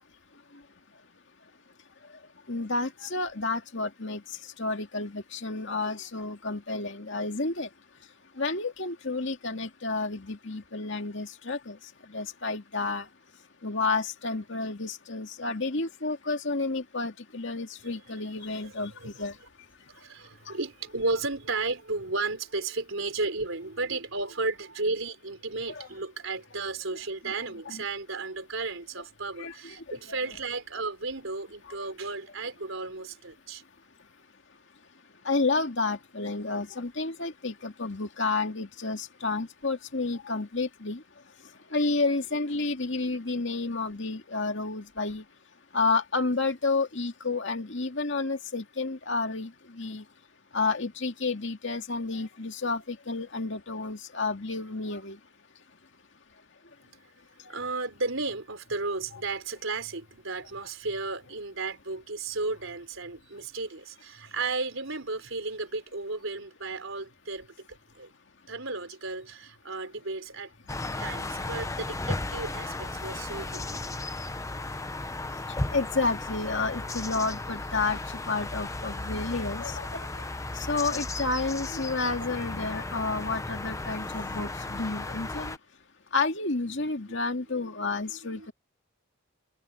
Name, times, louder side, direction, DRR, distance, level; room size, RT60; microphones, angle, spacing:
voice 1, 2.5-4.2 4.6-7.7 8.4-11.8 12.1-13.1 13.6-19.3 25.7-25.9 27.7-27.8 29.4-29.5 29.9-30.0 35.2-41.0 41.7-45.2 45.7-50.0 50.5-55.2 75.7-80.2 80.5-85.6 86.1-88.5, left 3 dB, 60° left, 2.4 m, -30 dB
voice 2, 18.5-19.3 19.9-33.6 56.8-57.0 57.5-68.1 68.5-70.5 71.0-73.8 87.1-87.2 87.8-88.5, right 3 dB, 70° right, 4.0 m, -34 dB
sound 1, 70.7-85.6, left 2 dB, 15° left, 0.8 m, -35 dB
head